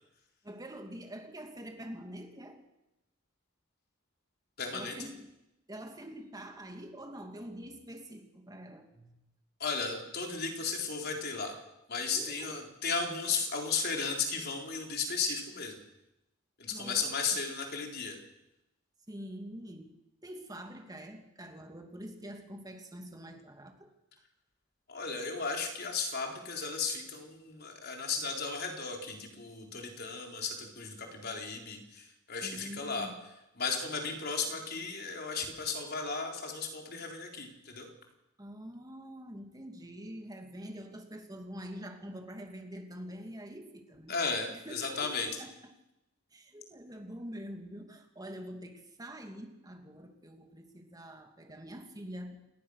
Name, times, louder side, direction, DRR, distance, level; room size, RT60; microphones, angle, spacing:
voice 1, 0.4-2.6 4.7-5.3 5.7-9.2 12.1-12.6 16.7-17.4 19.1-20.0 20.2-23.9 32.4-33.2 38.4-44.1 44.5-45.8 46.3-52.4, equal, 20° right, 4 dB, 2.6 m, -45 dB
voice 2, 4.6-5.0 9.6-11.5 11.9-15.7 16.6-18.2 24.9-33.1 33.6-37.9 44.1-45.3, left 5 dB, 55° left, 2 dB, 4.3 m, -35 dB
28.5 x 19.5 x 6.6 m, 0.92 s
head